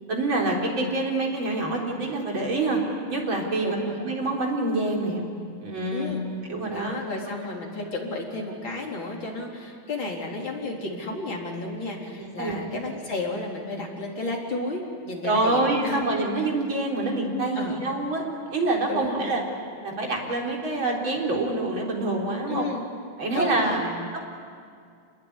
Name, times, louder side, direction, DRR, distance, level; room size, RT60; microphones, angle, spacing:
voice 1, 0.1-2.8 3.1-3.8 4.0-5.2 5.6-6.1 6.4-6.9 12.2-12.6 15.2-18.2 18.5-19.4 19.8-22.7 23.2-23.8 24.1-24.2, right 2 dB, 65° right, -1 dB, 4.8 m, -26 dB
voice 2, 3.6-4.0 5.9-6.2 6.7-16.0 17.5-17.8 18.9-19.3 22.5-22.8 23.3-23.9, left 2 dB, 65° left, -1 dB, 4.7 m, -32 dB
27.5 x 21.0 x 10.0 m, 2.2 s
omnidirectional pair, 2.3 m